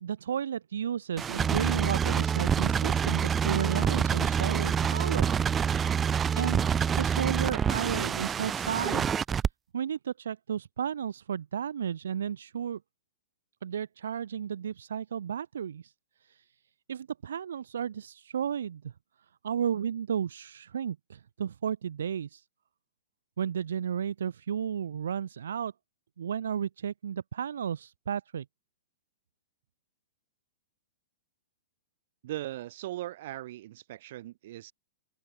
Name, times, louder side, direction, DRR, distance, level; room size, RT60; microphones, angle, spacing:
voice 1, 0.0-5.3 6.3-6.7 7.0-9.1 9.7-12.8 13.6-15.9 16.2-16.5 16.9-18.9 19.4-22.5 23.4-25.7 26.2-28.5, right 8 dB, 80° right, 0.5 m, -33 dB
sound 1, 1.2-9.5, right 7 dB, 15° right, 0.3 m, -27 dB
voice 2, 32.2-34.7, right 15 dB, 55° right, 1.5 m, -39 dB
open air
hypercardioid pair, 135°, 0 cm